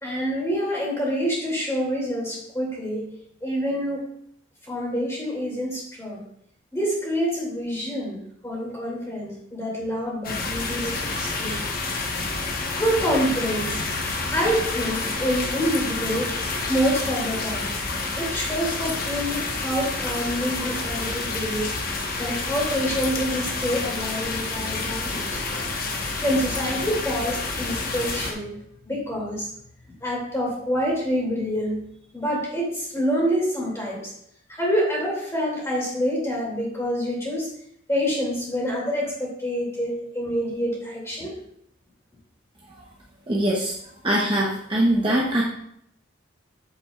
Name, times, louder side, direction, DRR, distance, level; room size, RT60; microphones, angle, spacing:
voice 1, 0.0-3.1 3.4-4.0 4.7-6.2 6.7-11.6 12.7-13.8 14.3-16.4 16.7-17.7 18.2-21.7 22.2-25.4 26.2-28.5 28.9-29.5 30.0-31.8 32.1-34.1 34.5-37.5 37.9-41.3, equal, 15° left, -4 dB, 2.6 m, -27 dB
sound 1, 10.2-28.3, left 3 dB, 45° left, 1.1 m, -29 dB
voice 2, 43.3-43.7 44.0-45.4, right 1 dB, 25° right, -4 dB, 0.9 m, -22 dB
7.9 x 7.5 x 2.4 m, 0.70 s
head